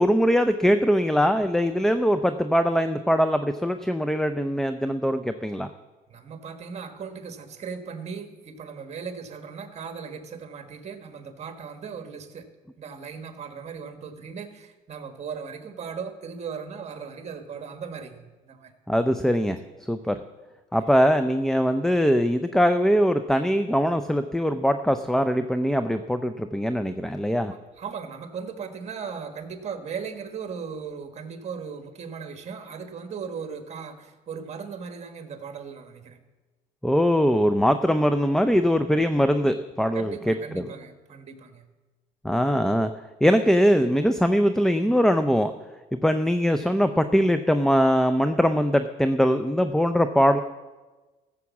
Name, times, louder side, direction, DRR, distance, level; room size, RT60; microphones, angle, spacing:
voice 1, 0.0-5.7 18.9-19.6 19.9-20.2 20.7-27.5 36.8-40.3 42.2-42.9 43.2-45.5 45.9-50.4, equal, 5° left, 9 dB, 0.4 m, -22 dB
voice 2, 6.1-12.5 12.8-18.7 27.5-36.2 39.9-41.7, right 6 dB, 40° right, 6 dB, 1.5 m, -37 dB
14.5 x 7.2 x 7.1 m, 1.2 s
cardioid pair, 110°, 17 cm